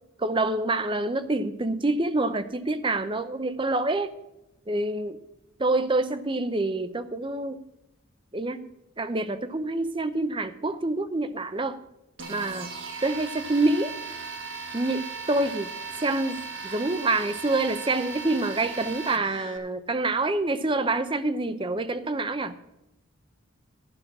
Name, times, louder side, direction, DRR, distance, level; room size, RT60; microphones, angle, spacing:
voice 1, 0.2-4.1 4.7-5.2 5.6-7.6 8.3-8.6 9.0-11.8 12.3-12.7 13.0-13.9 14.7-15.7 16.0-22.5, right 2 dB, 25° right, 0.6 m, -27 dB
sound 1, 12.2-19.6, right 4 dB, 60° right, 1.7 m, -37 dB
12.5 x 6.3 x 7.3 m
head